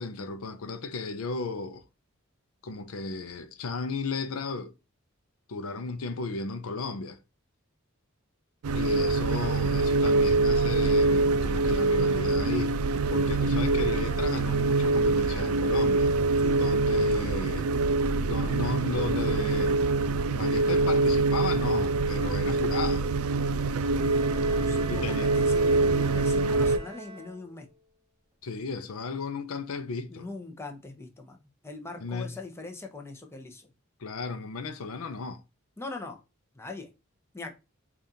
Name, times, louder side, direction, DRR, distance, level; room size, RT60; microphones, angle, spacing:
voice 1, 0.0-1.9 2.6-4.7 5.5-7.2 8.7-12.7 13.1-16.1 16.6-17.7 18.2-19.9 20.3-23.1 24.9-25.3 28.4-30.3 32.0-32.3 34.0-35.4, left 4 dB, 75° left, 0.5 m, -34 dB
sound 1, 8.6-26.8, right 3 dB, 85° right, 0.4 m, -25 dB
voice 2, 16.4-16.8 24.3-27.7 30.1-33.7 35.8-36.2 36.5-36.9 37.3-37.5, left 3 dB, 10° left, 0.7 m, -41 dB
Bowed string instrument, 23.6-27.7, right 1 dB, 25° right, 0.5 m, -43 dB
5.1 x 2.5 x 2.7 m
head